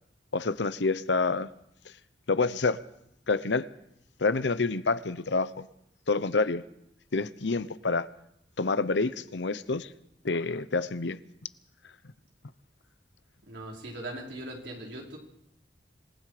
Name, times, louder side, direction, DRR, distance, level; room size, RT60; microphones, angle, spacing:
voice 1, 0.3-1.5 1.8-1.9 2.3-2.8 3.3-3.7 4.2-5.7 6.1-6.6 7.1-8.1 8.6-9.9 10.2-11.2, left 3 dB, 80° left, 14 dB, 0.9 m, -27 dB
voice 2, 13.4-15.2, right 1 dB, 75° right, -1 dB, 5.1 m, -40 dB
26.5 x 19.5 x 5.0 m, 0.78 s
head